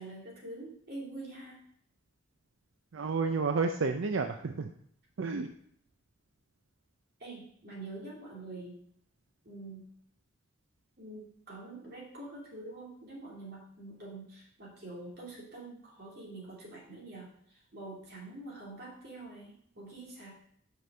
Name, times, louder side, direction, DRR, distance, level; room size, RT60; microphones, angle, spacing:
voice 1, 0.0-1.6 7.2-8.8 9.4-9.9 11.0-20.3, right 2 dB, 55° right, -3 dB, 2.7 m, -46 dB
voice 2, 2.9-4.7 5.2-5.5, right 4 dB, 80° right, 6 dB, 0.5 m, -31 dB
6.0 x 5.4 x 6.1 m, 0.67 s
head